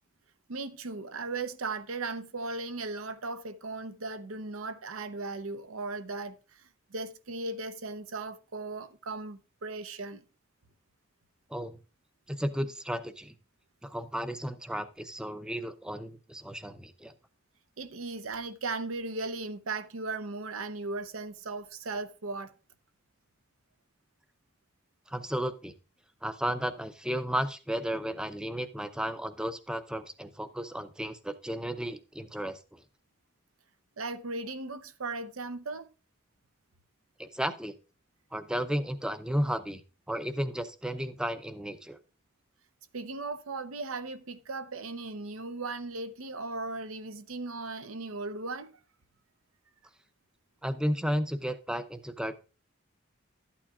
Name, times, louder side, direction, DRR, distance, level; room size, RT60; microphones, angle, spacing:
voice 1, 0.5-10.2 17.8-22.5 34.0-35.9 42.9-48.7, right 3 dB, 85° right, 0.7 m, -37 dB
voice 2, 12.3-13.3 13.8-17.1 25.1-25.7 26.2-32.8 37.2-37.8 38.3-39.8 40.1-42.0 50.6-52.3, equal, 5° right, 0.4 m, -33 dB
12.5 x 8.6 x 2.4 m
head